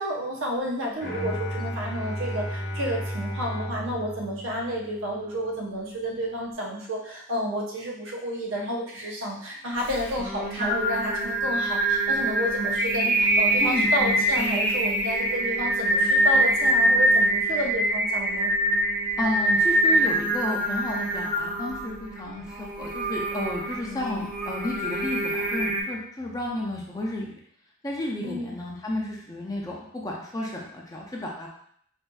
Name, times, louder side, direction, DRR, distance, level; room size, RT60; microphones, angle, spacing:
voice 1, 0.0-18.5 28.2-28.5, equal, 80° right, -2 dB, 0.8 m, -31 dB
Bowed string instrument, 1.0-5.2, equal, 40° left, 0.9 m, -33 dB
Singing, 9.9-25.8, right 1 dB, 25° right, 0.8 m, -24 dB
voice 2, 13.6-14.2 19.2-27.3 27.8-31.5, left 1 dB, 20° left, -2 dB, 0.5 m, -32 dB
4.3 x 2.5 x 2.3 m, 0.65 s
head